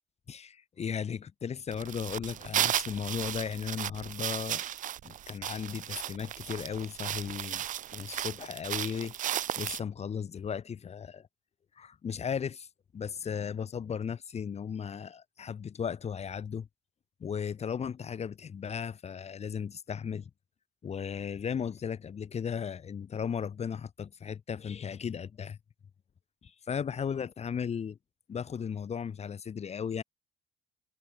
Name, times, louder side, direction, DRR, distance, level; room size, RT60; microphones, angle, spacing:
voice 1, 0.3-4.6 5.0-7.6 7.9-11.3 11.8-12.7 12.9-16.7 17.2-20.3 20.8-25.6 26.4-28.0 28.3-30.0, left 7 dB, 40° left, 2.7 m, -36 dB
sound 1, 1.7-9.8, right 11 dB, 50° right, 0.6 m, -35 dB
cardioid pair, 110°, 17 cm